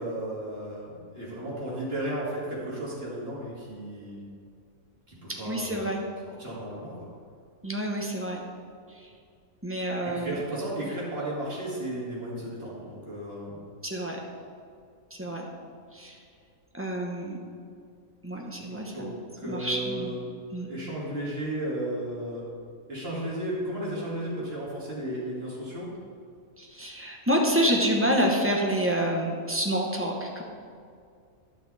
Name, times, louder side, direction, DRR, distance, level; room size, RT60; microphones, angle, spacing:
voice 1, 0.0-4.2 5.1-5.9 6.3-7.0 10.0-13.6 18.7-19.1 19.4-20.2 20.6-22.4 22.9-25.9, right 1 dB, 45° right, -6 dB, 2.7 m, -34 dB
voice 2, 5.4-6.0 7.6-8.4 8.9-9.1 9.6-10.4 13.8-14.2 15.1-15.5 15.9-16.2 16.7-17.4 18.2-19.2 19.4-20.2 20.5-20.7 26.6-30.4, equal, 10° right, -1 dB, 0.9 m, -28 dB
11.5 x 6.0 x 4.2 m, 2.3 s
omnidirectional pair, 1.5 m